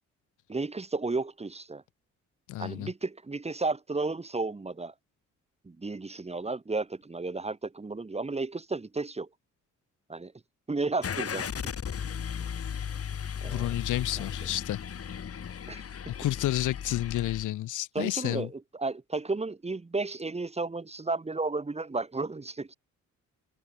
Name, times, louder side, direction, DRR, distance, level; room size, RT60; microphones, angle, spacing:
voice 1, 0.5-1.8 2.6-4.9 5.6-9.3 10.1-10.3 10.7-11.4 13.4-13.8 15.7-15.8 17.9-22.7, right 3 dB, 20° right, 2.8 m, -33 dB
voice 2, 2.5-2.9 13.4-14.8 16.1-18.5, left 14 dB, 80° left, 3.2 m, -30 dB
Car / Engine starting, 11.0-17.4, left 7 dB, 50° left, 4.9 m, -36 dB
cardioid pair, 90°, 30 cm